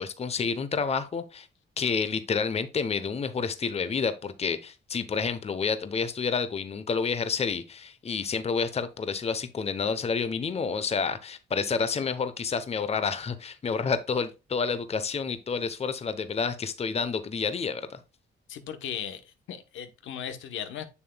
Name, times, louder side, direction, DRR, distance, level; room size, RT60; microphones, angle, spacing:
voice 1, 0.0-1.5 1.8-18.0, left 5 dB, 30° left, 0.8 m, -29 dB
voice 2, 18.5-19.2 19.5-20.8, left 9 dB, 80° left, 1.0 m, -36 dB
6.9 x 6.9 x 2.2 m
cardioid pair, 90°, 20 cm